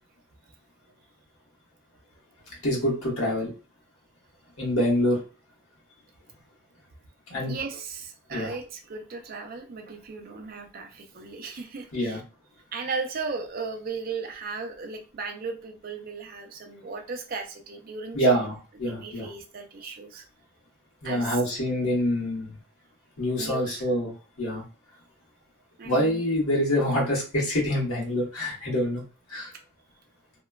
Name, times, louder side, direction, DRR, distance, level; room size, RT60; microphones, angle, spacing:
voice 1, 2.6-3.5 4.6-5.2 7.3-7.5 8.3-8.5 11.9-12.2 18.1-19.3 21.0-22.5 23.2-24.1 24.4-24.6 25.8-29.0 29.3-29.5, equal, 85° left, -4 dB, 1.3 m, -26 dB
voice 2, 7.4-12.2 12.7-18.5 18.8-20.2 21.0-21.4 23.4-23.8 25.8-26.2, right 4 dB, 45° right, 5 dB, 0.4 m, -36 dB
2.9 x 2.2 x 2.3 m, 0.33 s
head